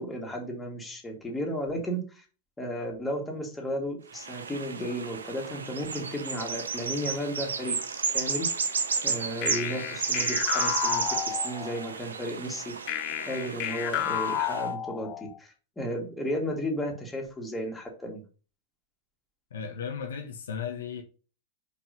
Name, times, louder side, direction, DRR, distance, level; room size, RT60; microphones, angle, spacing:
voice 1, 0.0-2.3 2.6-7.7 8.1-8.5 9.0-12.7 13.3-18.2, equal, 10° left, 2.4 m, -34 dB
sound 1, 4.1-14.7, right 5 dB, 75° right, 0.8 m, -32 dB
sound 2, 9.4-11.9 12.9-15.4, left 11 dB, 45° left, 0.8 m, -32 dB
voice 2, 19.5-21.0, left 6 dB, 70° left, 1.1 m, -35 dB
5.4 x 5.0 x 5.3 m
figure-of-eight pair, 95°, 0 cm